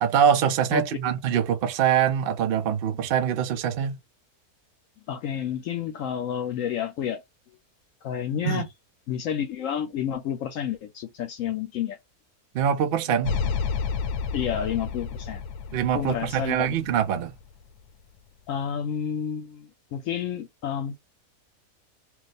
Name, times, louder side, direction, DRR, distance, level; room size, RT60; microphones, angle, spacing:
voice 1, 0.0-4.0 8.5-8.6 12.5-13.5 15.7-17.3, right 8 dB, 70° right, 0.5 m, -24 dB
voice 2, 0.7-1.1 5.1-7.2 8.0-8.7 9.1-12.0 14.3-15.4 15.9-16.7 18.5-21.0, left 9 dB, 65° left, 0.9 m, -30 dB
sound 1, 13.2-17.5, left 5 dB, 85° left, 1.1 m, -31 dB
2.4 x 2.3 x 4.0 m
omnidirectional pair, 1.6 m